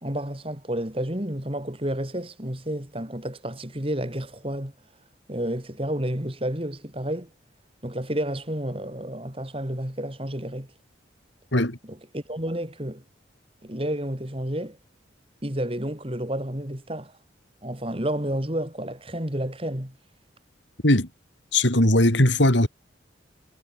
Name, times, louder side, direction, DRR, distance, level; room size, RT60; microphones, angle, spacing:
voice 1, 0.0-4.7 5.3-7.3 7.8-10.7 12.1-13.0 13.6-14.8 15.4-17.1 17.6-20.0, right 1 dB, 30° right, 3.2 m, -30 dB
voice 2, 21.5-22.7, left 1 dB, 70° left, 4.6 m, -19 dB
head